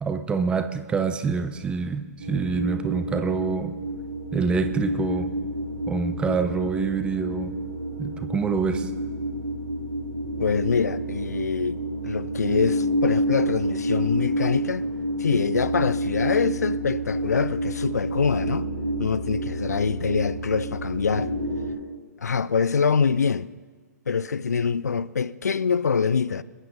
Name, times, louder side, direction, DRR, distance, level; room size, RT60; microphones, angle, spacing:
voice 1, 0.0-3.7 4.3-5.3 5.9-7.5 8.0-8.9, right 5 dB, 10° right, 0.8 m, -26 dB
sound 1, 2.2-21.7, right 1 dB, 60° right, 4.3 m, -29 dB
voice 2, 10.4-11.8 12.0-14.8 15.2-18.7 19.0-21.3 22.2-23.5 24.1-26.4, left 5 dB, 70° left, 0.5 m, -24 dB
29.0 x 14.5 x 2.7 m
figure-of-eight pair, 120°, 9 cm